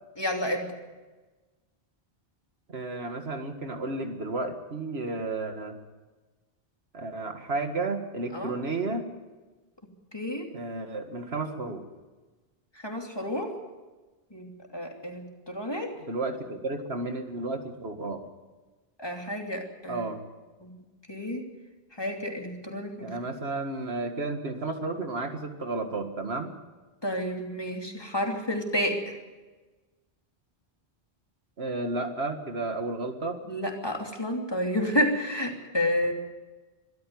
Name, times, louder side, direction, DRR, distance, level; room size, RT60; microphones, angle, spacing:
voice 1, 0.2-0.7 8.3-8.5 10.1-10.5 12.8-13.6 14.3-16.0 19.0-20.0 20.6-20.8 21.1-21.4 22.0-23.1 27.0-29.1 33.5-36.1, left 1 dB, 25° left, 2 dB, 3.0 m, -30 dB
voice 2, 2.7-5.8 6.9-9.1 10.5-11.8 16.1-18.3 19.9-20.2 23.0-26.5 31.6-33.4, right 3 dB, 80° right, 6 dB, 2.2 m, -32 dB
23.5 x 13.5 x 9.4 m, 1.2 s
omnidirectional pair, 1.0 m